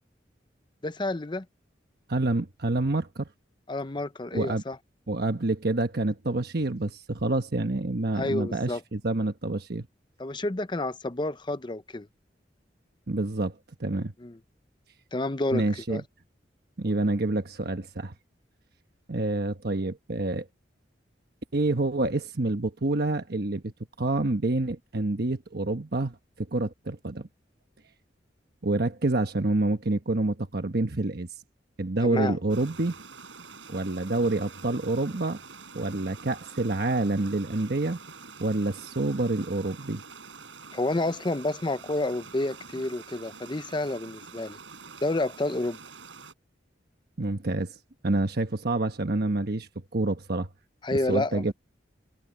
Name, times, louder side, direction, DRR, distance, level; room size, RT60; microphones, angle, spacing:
voice 1, 0.8-1.5 3.7-4.8 8.2-8.8 10.2-12.1 14.2-14.4 15.1-16.0 32.0-32.4 40.7-44.6 45.0-45.8 50.8-51.5, left 2 dB, 25° left, 0.7 m, -29 dB
voice 2, 2.1-3.3 4.3-4.6 5.1-9.9 13.1-14.1 15.5-16.0 16.8-18.1 19.1-20.5 21.5-23.7 24.0-27.3 28.6-31.3 31.8-32.9 33.7-35.4 35.7-38.0 38.4-40.0 47.2-47.8 48.0-50.5 51.1-51.5, right 2 dB, 55° right, 1.2 m, -27 dB
sound 1, 32.5-46.3, right 5 dB, 90° right, 7.3 m, -46 dB
head